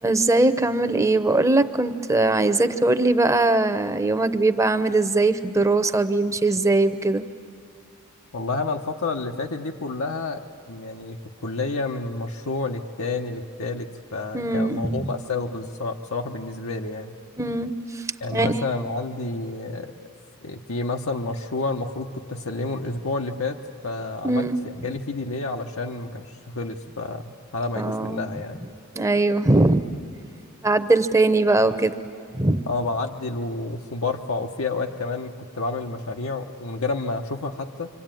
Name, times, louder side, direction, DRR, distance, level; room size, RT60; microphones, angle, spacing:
voice 1, 0.0-7.2 14.3-15.1 17.4-18.0 18.3-18.6 24.2-24.6 27.8-28.3 29.0-29.8 30.6-31.9 32.3-32.6, right 2 dB, 15° right, 11 dB, 0.7 m, -21 dB
voice 2, 8.3-17.2 18.2-19.9 20.4-23.6 23.8-28.6 32.7-37.9, left 3 dB, 85° left, 3 dB, 1.1 m, -29 dB
26.5 x 24.5 x 9.1 m, 2.4 s
head